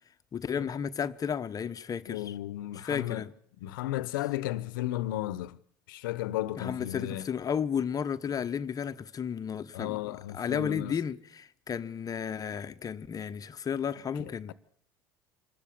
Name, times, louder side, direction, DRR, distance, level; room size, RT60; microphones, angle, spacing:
voice 1, 0.3-2.3 2.8-3.3 6.6-14.5, left 7 dB, 35° left, 1.1 m, -33 dB
voice 2, 2.1-3.3 3.6-5.6 5.9-7.3 9.7-11.0 14.2-14.5, left 15 dB, 80° left, 1.0 m, -34 dB
26.0 x 13.5 x 8.6 m
hypercardioid pair, 85°, 11 cm